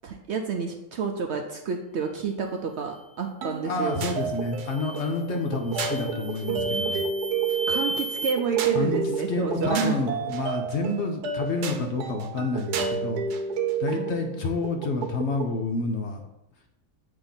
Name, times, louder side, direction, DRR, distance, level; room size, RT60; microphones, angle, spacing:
voice 1, 0.0-4.0 6.7-6.9 7.7-10.0, right 5 dB, 70° right, 3 dB, 0.6 m, -29 dB
sound 1, 3.4-15.6, right 6 dB, 85° right, 1.2 m, -31 dB
voice 2, 3.6-7.0 8.7-9.0 9.3-13.2 13.8-16.2, left 3 dB, 60° left, 3 dB, 0.8 m, -29 dB
sound 2, 3.9-4.2 4.7-5.2 5.7-8.3, right 1 dB, 45° right, 1.1 m, -33 dB
8.5 x 2.9 x 4.0 m, 0.90 s
omnidirectional pair, 1.6 m